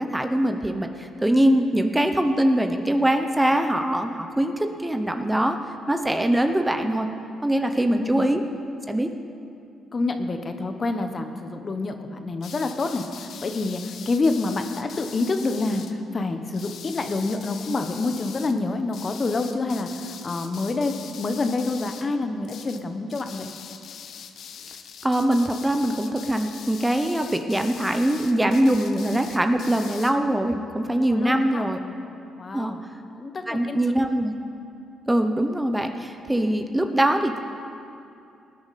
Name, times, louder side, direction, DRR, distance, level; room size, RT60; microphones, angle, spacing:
voice 1, 0.0-5.6 5.9-7.1 7.4-8.4 8.9-9.1 25.0-31.8 32.5-32.7 33.5-34.3 35.1-37.4, right 1 dB, 10° right, 6 dB, 0.8 m, -22 dB
voice 2, 7.9-8.3 9.9-23.5 31.0-31.7 32.4-32.8 33.2-33.8, left 3 dB, 35° left, 7 dB, 1.0 m, -27 dB
sound 1, 12.4-15.9 16.5-18.5 18.9-22.1 22.4-22.8 23.1-30.1, left 7 dB, 70° left, 0.7 m, -42 dB
19.0 x 9.6 x 4.2 m, 2.6 s
cardioid pair, 80°, 0 cm